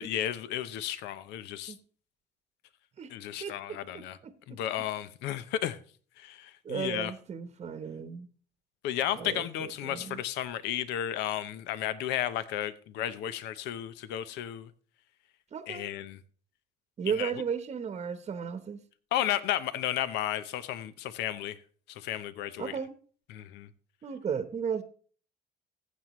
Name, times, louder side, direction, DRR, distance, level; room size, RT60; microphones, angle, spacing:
voice 1, 0.0-1.7 3.1-4.2 4.5-5.8 6.2-7.1 8.8-14.7 15.7-16.2 17.2-17.3 19.1-21.6 21.9-22.7 23.3-23.7, left 11 dB, 90° left, 0.7 m, -33 dB
voice 2, 4.2-4.6 6.6-8.3 9.1-10.2 15.5-15.9 17.0-18.8 22.6-22.9 24.0-24.8, right 7 dB, 40° right, 1.0 m, -35 dB
15.0 x 7.6 x 3.1 m
cardioid pair, 110°, 17 cm